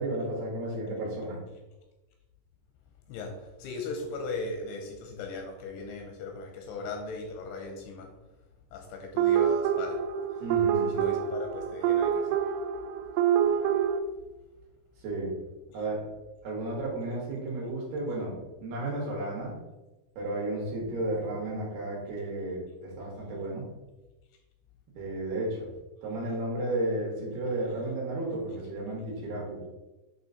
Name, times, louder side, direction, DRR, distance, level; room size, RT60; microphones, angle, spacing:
voice 1, 0.0-1.4 10.4-11.0 15.0-15.3 15.7-16.1 16.4-19.6 20.2-23.7 25.0-25.7 26.0-29.6, right 2 dB, 70° right, -3 dB, 3.3 m, -33 dB
voice 2, 3.1-8.1 8.7-10.1 10.8-12.5, left 3 dB, 85° left, 3 dB, 2.5 m, -38 dB
sound 1, 9.2-14.0, right 9 dB, 90° right, 2.9 m, -26 dB
8.6 x 3.0 x 3.9 m, 1.1 s
omnidirectional pair, 5.0 m